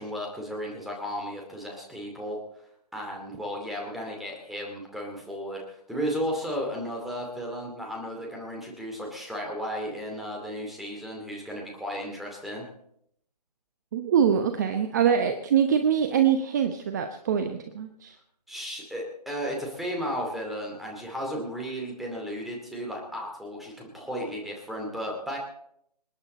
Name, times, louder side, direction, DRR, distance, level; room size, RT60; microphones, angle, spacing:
voice 1, 0.0-2.4 2.9-12.6 18.5-25.4, equal, ahead, -1 dB, 2.4 m, -34 dB
voice 2, 13.9-18.2, right 8 dB, 25° right, 7 dB, 0.9 m, -24 dB
27.0 x 9.7 x 4.3 m, 0.73 s
figure-of-eight pair, 150°, 21 cm